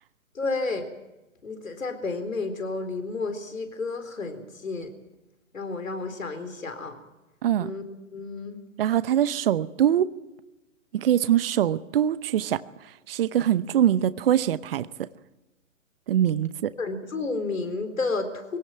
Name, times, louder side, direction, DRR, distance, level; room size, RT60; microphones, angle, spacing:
voice 1, 0.3-0.9 1.4-4.9 5.5-7.0 7.6-7.8 8.1-8.6 16.8-18.6, left 3 dB, 80° left, 8 dB, 4.1 m, -31 dB
voice 2, 8.8-10.1 10.9-12.6 13.1-14.9 16.1-16.7, right 10 dB, 45° right, 15 dB, 0.9 m, -23 dB
23.0 x 17.5 x 9.1 m, 1.0 s
hypercardioid pair, 135°, 40 cm